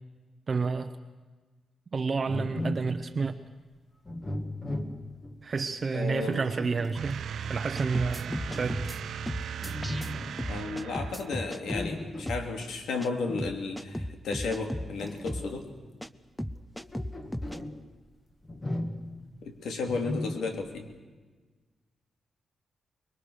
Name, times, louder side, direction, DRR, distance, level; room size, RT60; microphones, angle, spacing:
voice 1, 0.5-0.9 1.9-3.4 5.4-8.3 8.6-8.8, right 4 dB, 35° right, 8 dB, 0.8 m, -30 dB
sound 1, 2.3-3.0 4.0-5.4 6.1-7.1 8.3-9.2 9.6-10.4 11.6-12.4 13.3-13.6 14.7-15.8 16.6-17.8 18.4-19.2 19.8-20.7, left 1 dB, 20° left, 1.7 m, -37 dB
voice 2, 5.9-6.5 10.5-15.7 19.4-20.9, left 4 dB, 85° left, 5 dB, 3.0 m, -33 dB
sound 2, 7.0-11.7, right 7 dB, 70° right, 0.7 m, -37 dB
sound 3, 7.8-9.0 9.3-10.1 10.4-11.9 12.3-12.5 13.0-13.1 13.4-14.9 15.3-15.5 16.0-16.1 16.4-17.6, equal, 5° left, 0.6 m, -35 dB
24.5 x 22.0 x 6.6 m, 1.3 s
wide cardioid pair, 175°, 0 cm